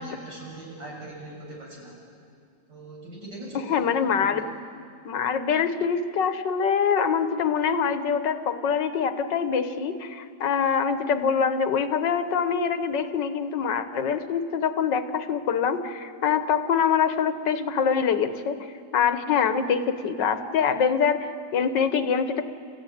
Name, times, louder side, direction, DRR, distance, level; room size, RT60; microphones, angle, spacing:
voice 1, 0.0-2.0 2.7-3.6 4.1-4.5, right 2 dB, 80° right, -3 dB, 7.2 m, -41 dB
voice 2, 3.7-4.5 5.1-18.6 18.9-22.5, left 6 dB, 85° left, 10 dB, 1.8 m, -24 dB
30.0 x 15.0 x 9.2 m, 2.3 s
omnidirectional pair, 1.9 m